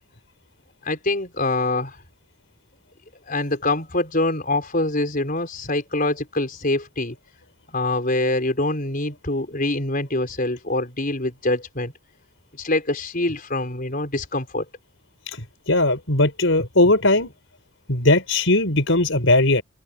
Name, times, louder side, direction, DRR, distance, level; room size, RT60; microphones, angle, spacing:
voice 1, 0.8-2.0 3.3-7.2 7.7-11.9 12.5-14.7, left 2 dB, 45° left, 5.2 m, -24 dB
voice 2, 15.3-17.3 17.9-19.6, left 2 dB, 70° left, 5.4 m, -19 dB
head